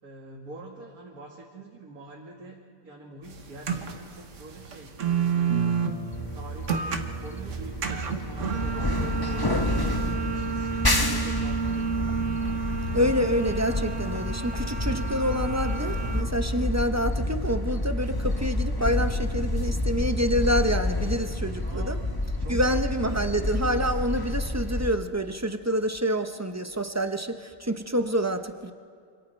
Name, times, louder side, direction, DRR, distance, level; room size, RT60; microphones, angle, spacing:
voice 1, 0.0-5.9 6.3-11.9 21.6-22.1 22.4-23.3, right 2 dB, 80° right, -3 dB, 2.4 m, -45 dB
sound 1, 3.3-16.2, right 6 dB, 60° right, 1.5 m, -31 dB
sound 2, 6.1-25.0, left 1 dB, 20° left, 0.9 m, -29 dB
voice 2, 12.9-22.0 22.5-28.7, equal, 15° right, 7 dB, 0.6 m, -27 dB
28.0 x 26.0 x 4.5 m, 2.2 s
omnidirectional pair, 1.5 m